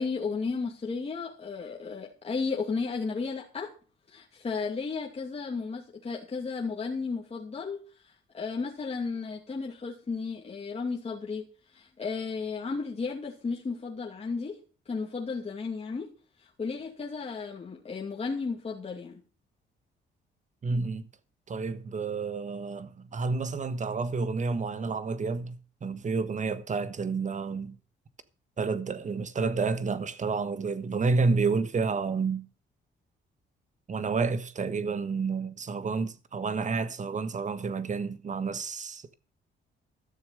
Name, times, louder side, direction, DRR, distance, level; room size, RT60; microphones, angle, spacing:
voice 1, 0.0-3.7 4.1-14.6 14.9-16.1 16.4-19.2, left 4 dB, 30° left, 2.5 m, -34 dB
voice 2, 20.6-21.0 21.5-27.8 28.6-32.5 33.9-39.2, right 4 dB, 40° right, 1.4 m, -30 dB
13.5 x 7.1 x 6.7 m
cardioid pair, 90°, 20 cm